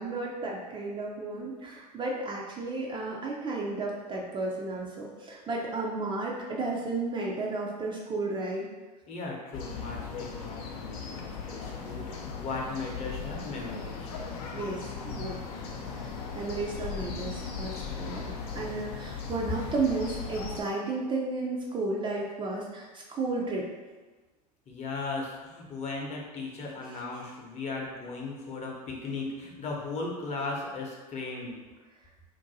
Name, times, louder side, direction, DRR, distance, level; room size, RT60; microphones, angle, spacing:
voice 1, 0.0-8.7 14.5-15.4 15.9-23.7, right 3 dB, 25° right, -2 dB, 0.4 m, -33 dB
voice 2, 9.1-14.1 24.7-31.5, left 3 dB, 30° left, -2 dB, 0.8 m, -37 dB
sound 1, 9.5-20.6, left 5 dB, 65° left, 0.5 m, -38 dB
2.6 x 2.2 x 4.0 m, 1.3 s
hypercardioid pair, 95°, 21 cm